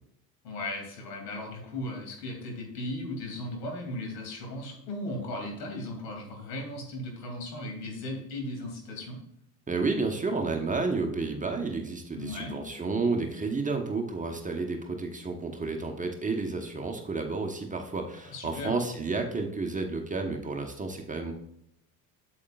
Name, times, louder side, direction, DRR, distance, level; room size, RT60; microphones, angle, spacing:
voice 1, 0.4-9.2 12.1-12.6 18.3-18.8, left 1 dB, 70° left, 2 dB, 2.7 m, -36 dB
voice 2, 9.7-21.3, right 3 dB, 15° right, 4 dB, 1.0 m, -31 dB
8.4 x 7.8 x 2.4 m, 0.74 s
hypercardioid pair, 65°, 50 cm